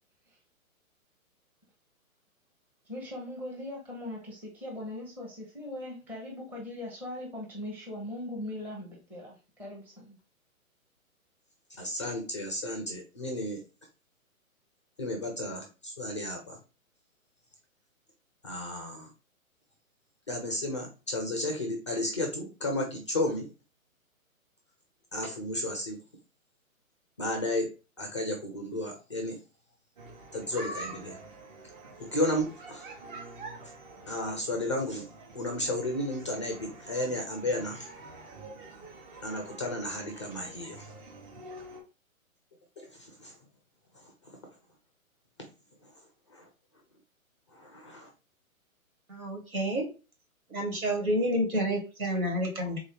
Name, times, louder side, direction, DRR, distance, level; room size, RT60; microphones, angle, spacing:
voice 1, 2.9-10.2, left 1 dB, 5° right, -5 dB, 0.7 m, -40 dB
voice 2, 11.7-13.6 15.0-16.6 18.4-19.1 20.3-23.5 25.1-26.0 27.2-27.7 28.0-29.4 30.3-31.2 32.0-33.0 33.6-33.7 34.1-35.1 35.3-37.9 39.2-40.9 42.8-43.4 43.9-44.3 45.4-45.5 45.8-45.9 46.3-46.5 47.5-48.1, left 1 dB, 20° left, 3 dB, 0.4 m, -33 dB
sound 1, 30.0-41.8, right 2 dB, 35° right, 1.0 m, -46 dB
voice 3, 49.1-49.9 50.5-52.8, equal, 80° right, 2 dB, 2.1 m, -29 dB
3.5 x 2.7 x 3.5 m, 0.32 s
hypercardioid pair, 135°, 42 cm